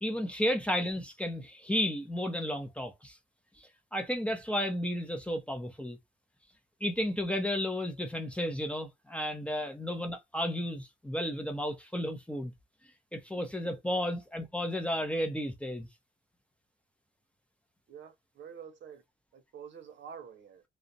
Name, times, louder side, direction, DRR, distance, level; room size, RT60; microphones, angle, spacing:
voice 1, 0.0-3.2 3.6-6.0 6.8-12.5 13.1-15.9, equal, 5° left, 0.6 m, -33 dB
voice 2, 17.9-19.0 19.3-20.6, right 7 dB, 65° right, 0.7 m, -48 dB
2.4 x 2.0 x 2.6 m
cardioid pair, 90°, 20 cm